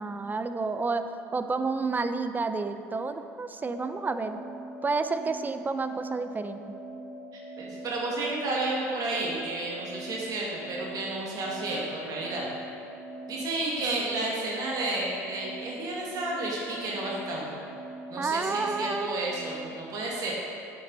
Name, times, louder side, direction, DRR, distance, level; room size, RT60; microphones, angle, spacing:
voice 1, 0.0-4.4 4.8-6.6 18.2-19.3, right 4 dB, 20° right, 10 dB, 0.5 m, -30 dB
sound 1, 3.6-19.6, right 1 dB, 80° left, 1.7 m, -43 dB
voice 2, 7.6-12.5 13.3-17.5 18.1-20.3, right 2 dB, 50° right, -3 dB, 1.9 m, -31 dB
8.5 x 7.5 x 3.9 m, 2.5 s
hypercardioid pair, 65°, 8 cm